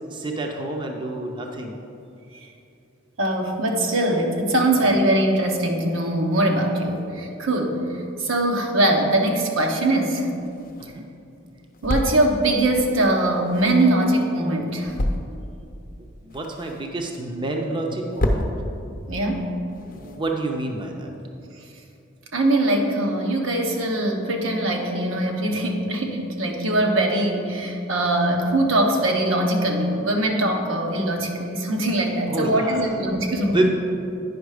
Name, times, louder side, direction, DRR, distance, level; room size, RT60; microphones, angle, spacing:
voice 1, 0.1-1.7 10.8-11.1 16.2-18.4 19.9-21.1 32.3-32.9 33.5-33.7, right 2 dB, 25° right, 2 dB, 0.6 m, -28 dB
voice 2, 3.2-7.8 8.2-10.3 11.8-14.9 19.1-19.5 22.3-33.7, right 1 dB, 80° right, 2 dB, 1.0 m, -22 dB
sound 1, 10.3-20.8, left 1 dB, 45° left, 0.7 m, -32 dB
9.2 x 5.6 x 4.9 m, 2.6 s
head